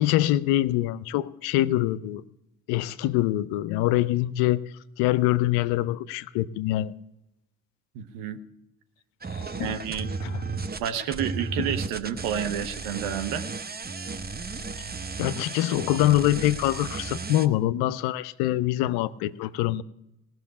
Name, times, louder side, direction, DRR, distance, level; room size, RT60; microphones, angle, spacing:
voice 1, 0.0-2.2 2.7-4.6 5.0-6.9 9.4-9.8 10.2-10.4 15.2-19.8, left 14 dB, 70° left, 17 dB, 0.6 m, -24 dB
voice 2, 7.9-8.4 9.6-10.1 10.8-13.5, right 9 dB, 75° right, 9 dB, 1.0 m, -30 dB
sound 1, 9.2-17.5, right 4 dB, 25° right, 0.9 m, -34 dB
18.0 x 6.3 x 9.7 m, 0.87 s
hypercardioid pair, 40°, 39 cm